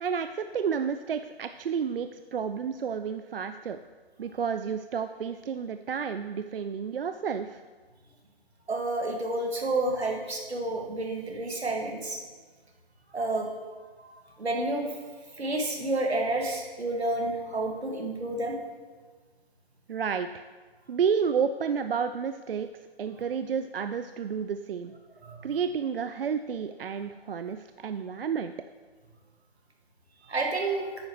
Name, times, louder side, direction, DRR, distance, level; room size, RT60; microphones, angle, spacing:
voice 1, 0.0-3.8 4.2-7.6 19.9-20.4 20.9-22.7 23.0-24.9 25.4-28.5, right 6 dB, 65° right, 9 dB, 0.4 m, -31 dB
voice 2, 8.7-12.2 13.1-13.5 14.0-14.9 15.4-18.6 25.2-25.5 30.2-30.9, right 2 dB, 85° right, 1 dB, 2.0 m, -30 dB
10.5 x 9.1 x 3.1 m, 1.4 s
hypercardioid pair, 160°, 31 cm